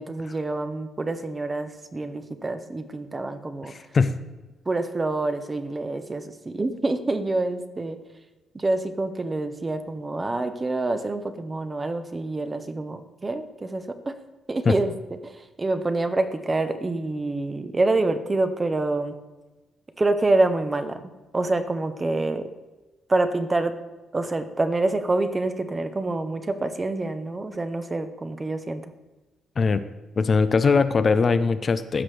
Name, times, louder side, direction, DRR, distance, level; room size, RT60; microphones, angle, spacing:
voice 1, 0.0-3.7 4.7-8.0 8.5-14.2 14.5-14.9 15.2-19.2 20.0-21.0 21.3-22.5 23.1-23.7 24.1-28.9, right 2 dB, 25° right, 9 dB, 0.8 m, -26 dB
voice 2, 3.7-4.2 14.7-14.8 29.6-29.8 30.2-32.0, left 4 dB, 40° left, 11 dB, 0.5 m, -21 dB
14.5 x 5.9 x 3.3 m, 1.1 s
cardioid pair, 90°, 0 cm